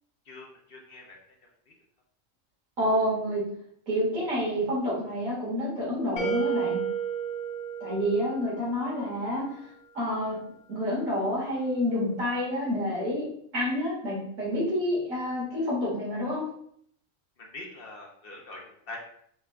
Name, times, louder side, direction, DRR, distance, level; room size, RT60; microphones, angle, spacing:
voice 1, 0.3-1.2 1.7-1.8 17.4-19.0, left 2 dB, 50° left, -1 dB, 0.8 m, -44 dB
voice 2, 2.8-3.4 3.9-6.8 7.8-9.6 9.9-10.4 10.7-13.2 13.5-16.4, equal, 75° right, -6 dB, 2.2 m, -28 dB
sound 1, 6.2-9.0, right 7 dB, 80° left, 1.3 m, -32 dB
4.3 x 3.5 x 2.2 m, 0.66 s
omnidirectional pair, 1.4 m